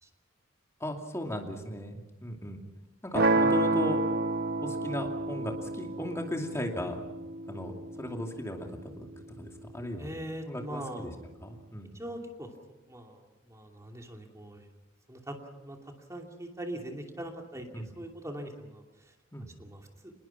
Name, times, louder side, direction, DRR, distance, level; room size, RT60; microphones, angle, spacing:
voice 1, 0.8-2.6 3.0-4.0 4.6-7.0 7.5-9.1 9.4-10.1 10.5-11.1 11.4-12.0 17.7-17.9 19.3-19.5, equal, 15° left, 2 dB, 2.6 m, -37 dB
sound 1, 3.1-9.2, right 2 dB, 50° right, 1.0 m, -30 dB
voice 2, 10.0-11.1 11.9-12.5 12.9-14.7 15.1-19.1 19.6-20.1, right 1 dB, 15° right, 2 dB, 2.7 m, -42 dB
25.5 x 21.0 x 5.8 m, 1.1 s
head